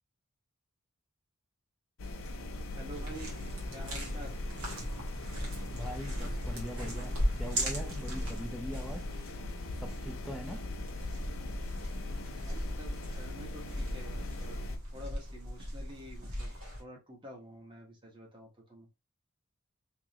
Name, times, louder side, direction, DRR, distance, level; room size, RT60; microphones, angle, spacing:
sound 1, 2.0-14.8, left 2 dB, 70° left, 0.6 m, -40 dB
voice 1, 2.7-3.3 3.7-4.4 12.4-16.5 16.8-18.9, equal, 20° right, 1.0 m, -49 dB
sound 2, 2.9-16.8, equal, 70° right, 1.5 m, -38 dB
voice 2, 5.7-9.2 9.8-10.6, equal, ahead, 0.5 m, -42 dB
3.6 x 3.1 x 2.9 m
head